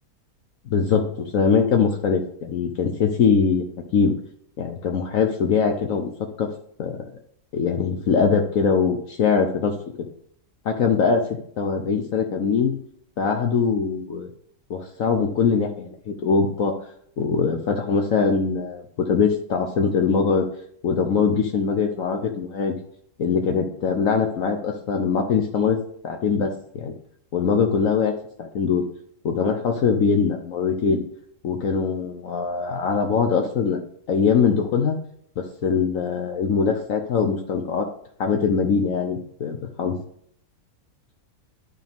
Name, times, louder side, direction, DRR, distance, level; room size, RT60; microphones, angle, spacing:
voice 1, 0.7-1.1 1.3-3.6 3.9-4.1 4.6-6.1 6.4-6.5 6.8-7.1 7.5-9.7 10.6-11.3 11.6-12.7 13.2-14.3 14.7-16.7 17.2-20.4 20.8-22.8 23.2-26.9 27.3-28.1 28.4-28.8 29.2-31.0 31.4-33.8 34.1-35.0 35.4-37.9 38.2-40.0, left 5 dB, 65° left, 3 dB, 1.2 m, -22 dB
12.0 x 4.1 x 3.6 m, 0.63 s
omnidirectional pair, 1.5 m